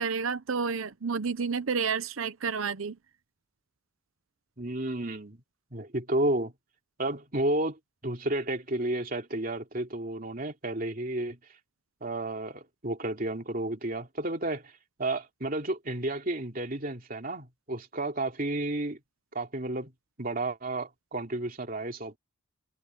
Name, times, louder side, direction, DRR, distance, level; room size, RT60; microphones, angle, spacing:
voice 1, 0.0-3.0, right 5 dB, 90° right, 0.8 m, -30 dB
voice 2, 4.6-5.4 5.7-6.5 7.0-11.4 12.0-14.7 15.0-19.0 19.3-19.9 20.2-22.2, right 1 dB, 45° right, 2.9 m, -32 dB
head